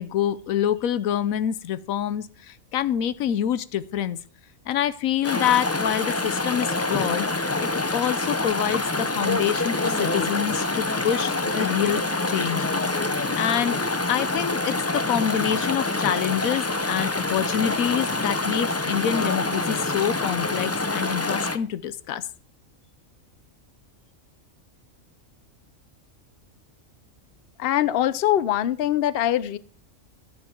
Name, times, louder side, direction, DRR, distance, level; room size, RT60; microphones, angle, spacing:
voice 1, 0.0-4.2 4.7-7.3 7.6-12.6 13.4-13.8 14.1-22.3, left 10 dB, 90° left, 15 dB, 1.1 m, -26 dB
Chatter / Stream, 5.2-21.6, left 2 dB, 25° left, 0.3 m, -26 dB
voice 2, 27.6-29.6, left 12 dB, 55° left, 16 dB, 0.8 m, -22 dB
14.0 x 8.5 x 4.4 m, 0.39 s
omnidirectional pair, 1.4 m